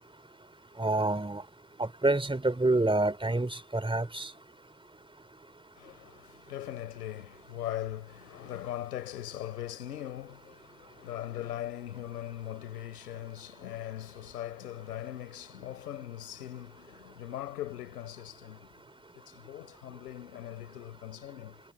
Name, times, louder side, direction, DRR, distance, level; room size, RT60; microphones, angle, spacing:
voice 1, 0.8-1.4 1.8-4.3, right 2 dB, 10° right, 3.3 m, -27 dB
voice 2, 5.7-18.8 19.1-21.6, left 12 dB, 80° left, 4.7 m, -40 dB
figure-of-eight pair, 50°, 47 cm